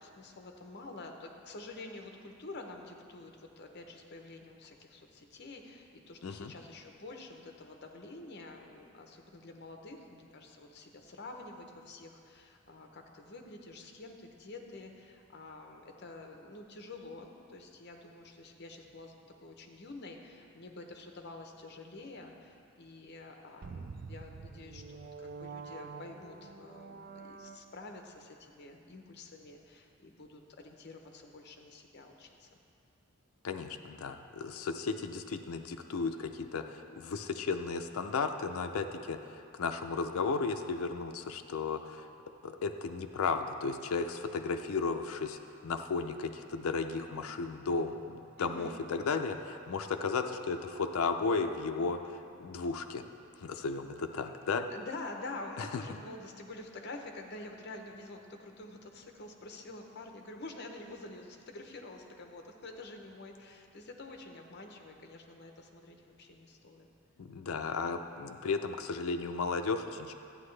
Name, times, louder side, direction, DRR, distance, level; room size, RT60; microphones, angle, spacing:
voice 1, 0.0-19.1 19.4-32.6 48.4-48.8 54.2-66.9, left 2 dB, 50° left, 3 dB, 0.8 m, -48 dB
voice 2, 6.2-6.5 33.4-42.1 42.4-53.0 53.4-54.7 55.6-55.7 67.2-70.1, left 4 dB, 75° left, 6 dB, 0.4 m, -34 dB
sound 1, 23.6-28.0, right 4 dB, 40° right, 0.3 m, -47 dB
11.5 x 8.8 x 3.3 m, 2.5 s
head